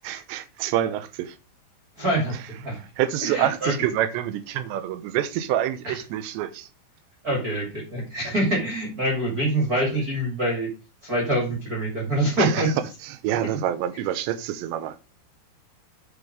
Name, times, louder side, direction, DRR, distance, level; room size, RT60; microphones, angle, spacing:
voice 1, 0.0-1.4 3.0-6.7 12.4-12.6 13.0-15.1, right 11 dB, 90° right, 3.1 m, -27 dB
voice 2, 2.0-2.8 3.2-3.8 5.8-6.0 7.2-10.7 11.0-12.7, right 1 dB, 25° right, 2.6 m, -25 dB
8.2 x 5.3 x 4.8 m
omnidirectional pair, 5.0 m